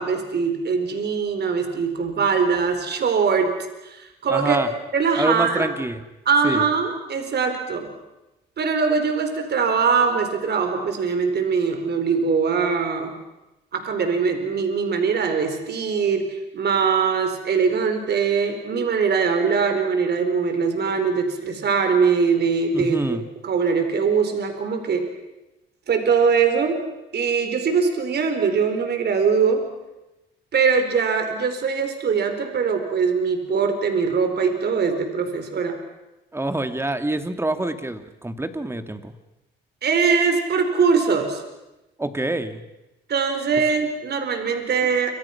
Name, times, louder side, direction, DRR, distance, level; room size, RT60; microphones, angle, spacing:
voice 1, 0.0-3.5 3.8-4.6 4.9-5.7 6.3-7.9 8.6-13.2 13.7-23.2 23.4-25.0 25.9-26.8 27.1-29.6 30.5-35.8 39.8-41.4 43.1-45.1, right 5 dB, 55° right, 6 dB, 4.5 m, -22 dB
voice 2, 4.3-4.7 5.2-6.0 6.4-6.7 22.7-23.2 36.3-39.1 42.0-42.6, right 1 dB, 10° right, 8 dB, 2.4 m, -26 dB
29.0 x 26.0 x 6.0 m, 0.99 s
cardioid pair, 90°, 20 cm